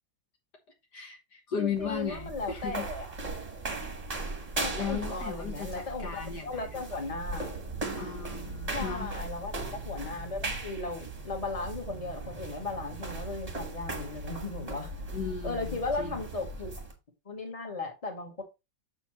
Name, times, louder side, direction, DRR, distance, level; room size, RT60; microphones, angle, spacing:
voice 1, 0.9-2.9 4.8-7.0 8.0-9.1 15.1-16.2, left 7 dB, 60° left, 2.0 m, -36 dB
voice 2, 1.6-3.1 4.6-7.5 8.7-14.9 15.4-16.7 17.3-18.4, left 3 dB, 20° left, 1.9 m, -36 dB
sound 1, 1.7-17.0, right 2 dB, 20° right, 1.4 m, -38 dB
7.1 x 7.0 x 2.9 m
omnidirectional pair, 2.1 m